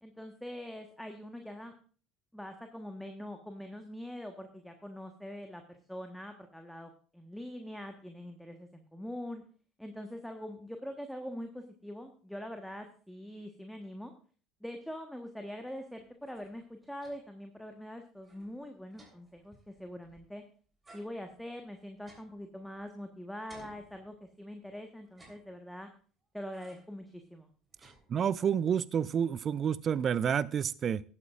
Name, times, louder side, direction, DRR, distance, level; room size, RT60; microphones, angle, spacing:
voice 1, 0.0-1.7 2.3-9.4 9.8-14.1 14.6-20.4 20.9-25.9 26.3-27.5, equal, ahead, 5 dB, 1.2 m, -43 dB
sound 1, 16.0-17.5 17.8-17.9 18.2-20.4 20.8-23.1 23.5-24.6 25.0-26.0 26.5-27.0 27.4-28.5, right 2 dB, 15° right, 3.5 m, -60 dB
voice 2, 28.1-31.0, right 8 dB, 40° right, 20 dB, 0.4 m, -29 dB
18.5 x 8.9 x 2.5 m, 0.42 s
figure-of-eight pair, 60°, 0 cm